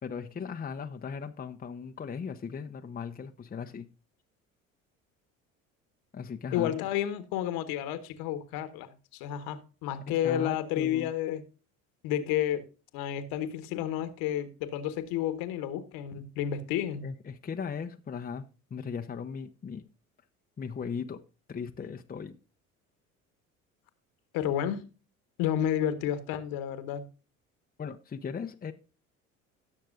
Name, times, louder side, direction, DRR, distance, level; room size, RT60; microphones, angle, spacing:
voice 1, 0.0-3.9 6.1-6.8 10.1-11.1 17.0-18.5 18.7-19.8 20.6-21.2 21.5-22.4 27.8-28.7, left 6 dB, 20° left, 0.9 m, -37 dB
voice 2, 6.5-11.4 12.0-12.6 12.9-17.0 24.3-24.8 25.4-27.1, left 11 dB, 65° left, 1.5 m, -31 dB
17.5 x 6.6 x 2.5 m
hypercardioid pair, 65°, 40 cm